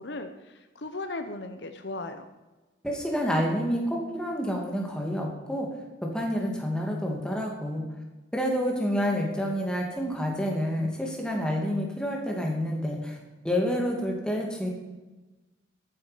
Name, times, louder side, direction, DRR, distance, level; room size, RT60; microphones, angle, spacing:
voice 1, 0.0-2.2, left 2 dB, 65° left, 8 dB, 0.9 m, -37 dB
voice 2, 2.8-5.7 6.0-7.9 8.3-13.2 13.4-14.7, equal, 5° left, 0 dB, 2.4 m, -28 dB
13.5 x 9.7 x 5.1 m, 1.2 s
head